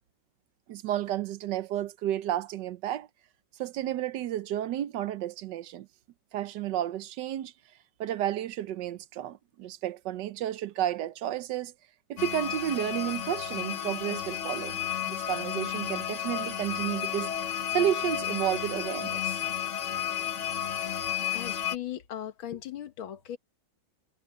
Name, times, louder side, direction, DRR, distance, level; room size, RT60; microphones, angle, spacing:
voice 1, 0.7-3.1 3.6-5.9 6.3-7.5 8.0-11.7 12.1-14.8 15.1-19.4, right 12 dB, 70° right, 1.3 m, -32 dB
sound 1, 12.2-21.8, left 10 dB, 50° left, 1.0 m, -32 dB
voice 2, 21.3-23.4, left 11 dB, 90° left, 2.1 m, -38 dB
omnidirectional pair, 2.1 m